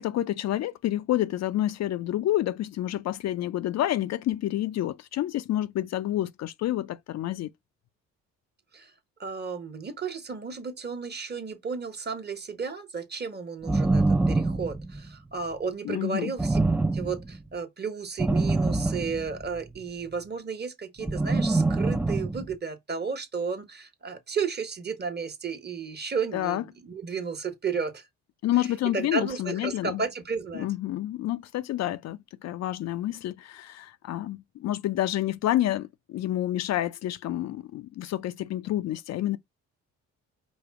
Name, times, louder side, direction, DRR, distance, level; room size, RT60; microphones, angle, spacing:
voice 1, 0.0-7.5 15.8-16.3 26.3-26.6 28.4-30.0 30.5-39.4, left 13 dB, 60° left, 0.4 m, -29 dB
voice 2, 9.2-16.6 16.9-28.1 28.9-30.7, right 5 dB, 35° right, 1.2 m, -33 dB
sound 1, 13.6-15.1 16.4-17.4 18.2-19.7 21.0-22.5, right 2 dB, 5° right, 0.3 m, -25 dB
5.2 x 2.2 x 4.6 m
cardioid pair, 90°, 30 cm